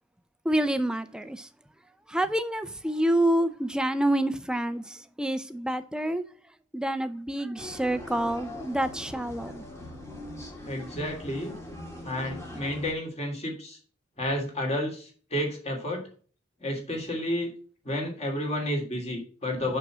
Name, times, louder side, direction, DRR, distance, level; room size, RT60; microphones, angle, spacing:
voice 1, 0.4-1.5 2.1-6.2 6.7-9.6, right 1 dB, 5° right, 0.5 m, -27 dB
sound 1, 7.6-12.9, left 1 dB, 15° left, 2.0 m, -41 dB
voice 2, 10.6-11.5 12.0-13.8 14.2-16.1 16.6-17.5 17.8-19.8, left 1 dB, 30° left, 2.9 m, -31 dB
6.6 x 6.2 x 6.1 m
head